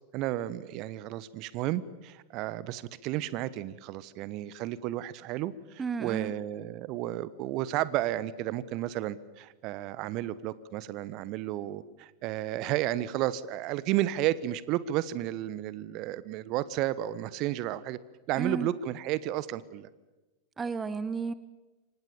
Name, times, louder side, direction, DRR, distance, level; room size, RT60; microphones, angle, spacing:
voice 1, 0.1-18.0 18.3-19.9, right 14 dB, 40° right, 17 dB, 1.2 m, -32 dB
voice 2, 5.8-6.3 18.3-18.7 20.6-21.3, right 5 dB, 15° right, 16 dB, 1.0 m, -32 dB
28.0 x 24.5 x 7.3 m, 1.2 s
figure-of-eight pair, 90°, 0 cm